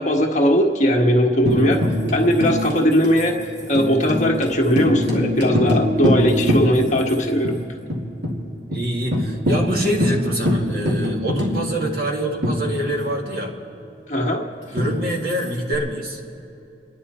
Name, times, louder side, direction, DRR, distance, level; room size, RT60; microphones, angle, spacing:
voice 1, 0.0-1.8 2.1-3.4 3.7-7.5 14.1-14.5, equal, 40° left, 0 dB, 1.6 m, -19 dB
Tambourine, 1.5-7.1 7.4-7.5 7.9-8.4 8.7-8.8 9.1-13.2 14.8-15.7, equal, 80° right, 2.8 m, -24 dB
voice 2, 8.7-13.5 14.7-16.2, right 1 dB, 55° right, 0 dB, 2.0 m, -25 dB
28.5 x 11.0 x 4.4 m, 3.0 s
head